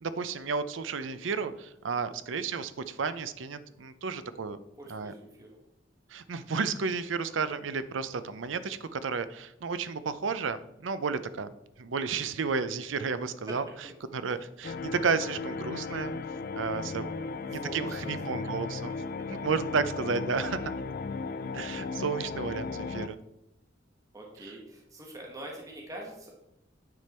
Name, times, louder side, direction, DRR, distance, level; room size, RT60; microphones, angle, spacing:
voice 1, 0.0-4.6 4.9-5.1 6.1-11.5 11.8-13.6 14.1-16.2 16.5-17.1 17.5-18.9 19.3-20.7 21.5-23.2, right 5 dB, 85° right, 13 dB, 0.6 m, -32 dB
voice 2, 4.8-5.6 13.5-13.6 17.2-17.4 17.6-18.6 24.1-26.3, right 1 dB, 20° right, -1 dB, 1.5 m, -44 dB
sound 1, 14.6-23.1, left 4 dB, 50° left, 0.4 m, -36 dB
9.5 x 5.2 x 4.3 m, 0.85 s
head